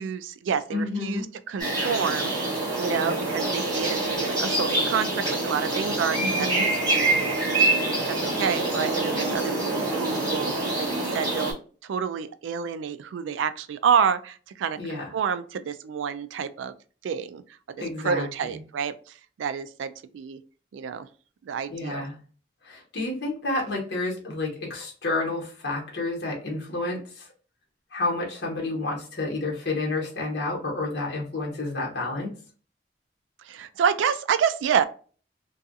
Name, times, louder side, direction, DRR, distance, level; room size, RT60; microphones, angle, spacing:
voice 1, 0.0-2.3 2.8-6.5 8.1-11.5 11.8-16.7 17.0-17.4 17.7-17.8 18.0-18.9 19.4-20.4 20.7-21.1 21.4-22.1 33.5-34.8, right 7 dB, 90° right, 13 dB, 0.3 m, -28 dB
voice 2, 0.7-1.3 2.9-3.2 6.2-6.7 14.8-15.1 17.8-18.3 21.7-22.1 22.6-27.2 27.9-32.3, left 2 dB, 60° left, -1 dB, 1.0 m, -30 dB
sound 1, 1.6-11.5, right 2 dB, 20° right, 1.1 m, -26 dB
2.7 x 2.3 x 2.4 m, 0.40 s
head